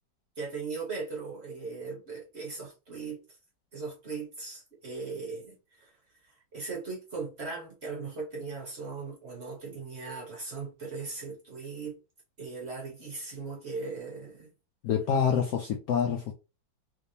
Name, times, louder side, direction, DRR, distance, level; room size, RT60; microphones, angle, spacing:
voice 1, 0.4-3.2 3.7-5.9 6.2-12.0 12.4-14.5, right 4 dB, 40° right, 1.1 m, -38 dB
voice 2, 14.8-16.3, left 7 dB, 90° left, 0.8 m, -27 dB
3.4 x 3.3 x 2.8 m
omnidirectional pair, 2.2 m